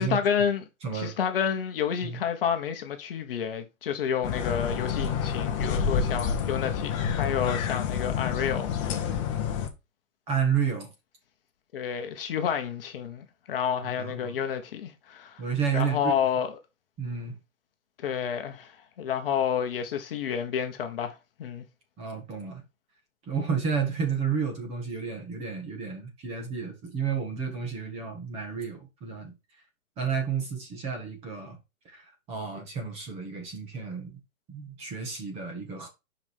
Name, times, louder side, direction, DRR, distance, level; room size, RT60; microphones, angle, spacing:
voice 1, 0.0-0.6 0.9-9.2 11.7-15.4 15.7-16.6 18.0-21.6, left 8 dB, 40° left, 1.2 m, -30 dB
voice 2, 0.8-1.1 2.0-2.2 10.3-10.9 13.8-14.3 15.4-16.1 17.0-17.3 22.0-22.6 23.3-29.3 30.0-31.6 31.8-34.2 34.5-35.9, right 6 dB, 15° right, 1.6 m, -31 dB
sound 1, 4.2-9.7, left 7 dB, 25° left, 1.1 m, -28 dB
7.2 x 5.2 x 3.6 m
hypercardioid pair, 165°, 41 cm